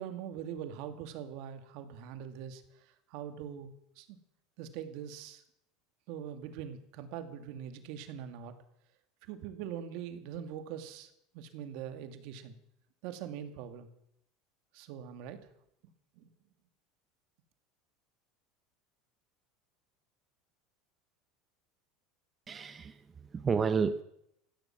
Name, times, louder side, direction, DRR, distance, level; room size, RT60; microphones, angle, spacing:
voice 1, 0.0-4.2 4.6-5.4 6.1-8.5 9.2-12.6 13.0-13.9 14.7-15.4 16.2-16.3, right 9 dB, 65° right, 9 dB, 2.1 m, -43 dB
voice 2, 22.5-24.0, right 5 dB, 25° right, 11 dB, 0.8 m, -31 dB
15.5 x 13.0 x 7.3 m, 0.76 s
supercardioid pair, 130°, 0 cm